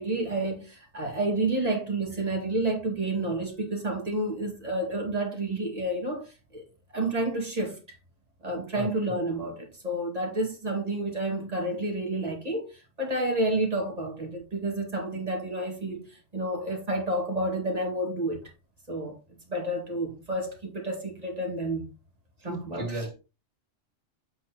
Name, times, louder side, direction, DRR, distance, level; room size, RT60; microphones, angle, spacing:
voice 1, 0.0-6.3 6.5-6.6 6.9-7.8 8.4-12.7 13.0-18.4 18.9-19.1 19.5-21.9 22.4-23.1, right 1 dB, 35° right, 2.3 m, -30 dB
voice 2, 22.5-23.1, right 1 dB, 70° right, 2.8 m, -34 dB
8.0 x 6.2 x 3.0 m
omnidirectional pair, 1.2 m